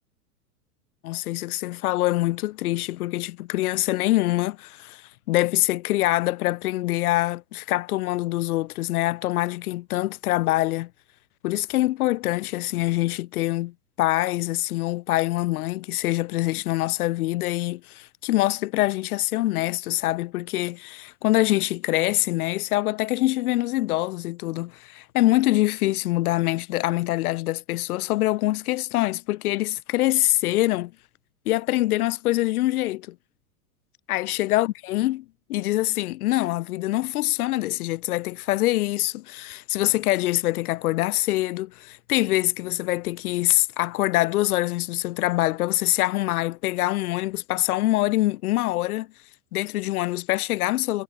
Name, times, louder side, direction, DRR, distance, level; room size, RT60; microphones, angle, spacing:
voice 1, 1.0-5.0 5.3-10.9 11.4-30.9 31.5-33.2 34.1-35.2 35.5-49.1 49.5-51.0, left 17 dB, 70° left, 0.6 m, -24 dB
hypercardioid pair, 110°, 46 cm